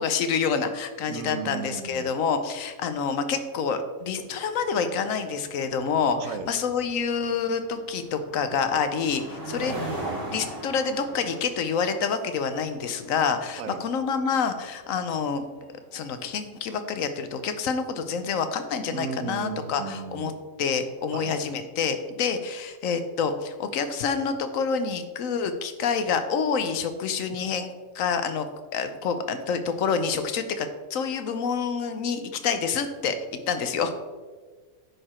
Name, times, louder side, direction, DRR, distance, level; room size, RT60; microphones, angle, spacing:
voice 1, 0.0-9.8 10.3-15.5 15.9-20.3 20.6-33.2 33.5-33.9, left 6 dB, 75° left, 9 dB, 1.1 m, -27 dB
voice 2, 1.1-2.1 6.2-6.5 9.6-10.5 13.6-13.8 18.9-20.4 21.1-21.4 27.3-27.4, right 6 dB, 75° right, 10 dB, 1.0 m, -36 dB
sound 1, 4.0-17.6, right 1 dB, 55° right, 3.1 m, -41 dB
9.7 x 4.7 x 4.3 m, 1.4 s
omnidirectional pair, 1.5 m